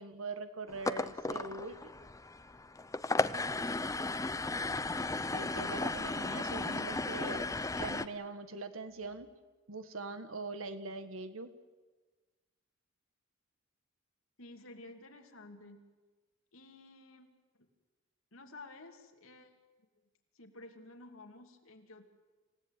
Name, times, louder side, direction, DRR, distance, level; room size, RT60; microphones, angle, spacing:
voice 1, 0.0-1.9 5.3-7.5 7.8-9.3 9.7-11.5, right 3 dB, 80° right, 10 dB, 1.7 m, -42 dB
sound 1, 0.7-8.1, left 2 dB, 15° left, 0.7 m, -35 dB
voice 2, 14.4-15.9 16.5-17.3 18.3-19.5 20.3-22.1, left 2 dB, 80° left, 4 dB, 2.8 m, -52 dB
27.5 x 16.5 x 9.2 m, 1.3 s
head